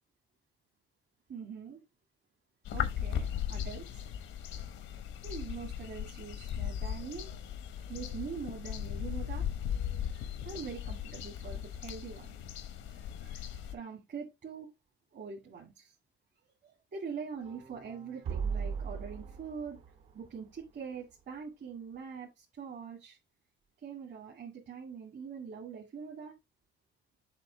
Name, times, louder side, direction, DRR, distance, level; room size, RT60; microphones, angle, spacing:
voice 1, 1.3-1.8 2.7-4.1 5.2-7.3 7.9-9.5 10.0-12.4 12.8-14.7 15.1-15.9 16.6-19.8 20.1-23.2 23.8-26.3, right 6 dB, 60° right, 2.2 m, -43 dB
sound 1, 2.6-13.7, left 9 dB, 85° left, 1.0 m, -37 dB
sound 2, 17.3-20.6, right 6 dB, 85° right, 3.3 m, -39 dB
7.5 x 2.6 x 5.8 m
cardioid pair, 90°, 20 cm